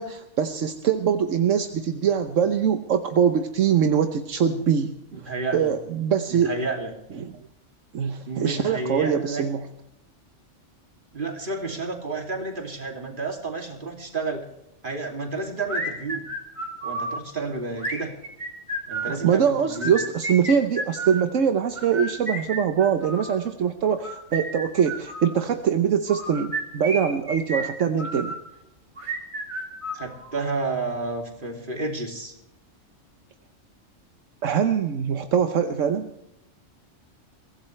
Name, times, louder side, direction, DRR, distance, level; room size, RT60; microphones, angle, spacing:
voice 1, 0.0-5.2 5.5-6.5 7.2-7.3 7.9-9.6 19.1-28.4 34.4-36.1, right 7 dB, 75° right, 7 dB, 1.3 m, -23 dB
voice 2, 5.1-5.7 6.3-6.9 8.3-9.4 11.1-14.5 14.8-16.2 16.8-18.1 18.9-19.9 29.9-32.3, right 3 dB, 40° right, 2 dB, 3.0 m, -31 dB
sound 1, 15.7-17.2 17.8-19.2 19.7-21.3 21.8-23.3 23.9-25.3 26.1-28.4 29.0-30.4, right 1 dB, 25° right, 3.0 m, -32 dB
23.0 x 16.5 x 3.3 m, 0.85 s
omnidirectional pair, 1.3 m